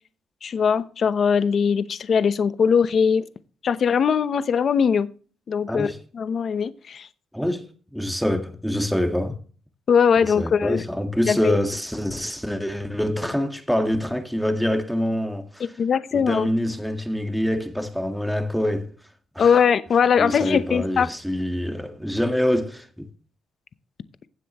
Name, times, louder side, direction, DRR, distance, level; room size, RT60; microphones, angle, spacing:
voice 1, 0.4-3.2 3.6-5.1 5.5-7.1 9.9-10.8 11.3-11.6 15.6-16.5 19.4-21.1, left 6 dB, 50° left, 0.8 m, -21 dB
voice 2, 5.7-6.0 7.3-9.4 10.4-15.7 16.1-18.9 19.3-19.5 20.2-23.1, equal, ahead, 1.6 m, -25 dB
16.0 x 7.6 x 3.0 m
cardioid pair, 90°, 0 cm